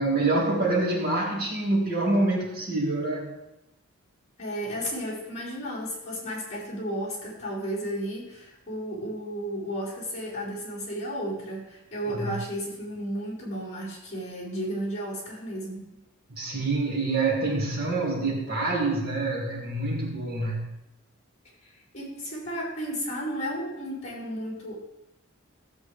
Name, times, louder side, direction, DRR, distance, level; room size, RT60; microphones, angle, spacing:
voice 1, 0.0-3.3 12.1-12.3 16.3-20.7, right 2 dB, 45° right, -3 dB, 2.3 m, -26 dB
voice 2, 4.4-15.8 21.6-24.8, equal, 35° left, -8 dB, 4.9 m, -33 dB
15.0 x 8.0 x 3.5 m, 0.90 s
head